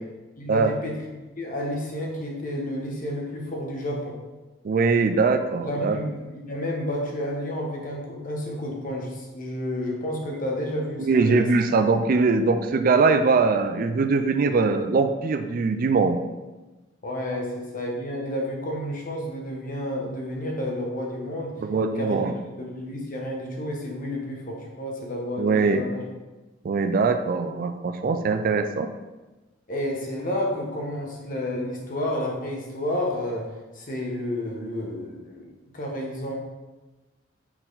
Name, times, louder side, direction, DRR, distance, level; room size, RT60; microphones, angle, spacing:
voice 1, 0.4-1.0 1.4-4.2 5.6-11.5 17.0-21.6 21.9-26.0 29.7-33.5 33.7-36.4, left 1 dB, 45° left, -1 dB, 1.2 m, -31 dB
voice 2, 4.6-6.0 11.0-16.2 21.6-22.3 25.4-25.8 26.6-28.9, right 4 dB, 45° right, 8 dB, 0.4 m, -22 dB
5.9 x 4.2 x 3.9 m, 1.2 s
head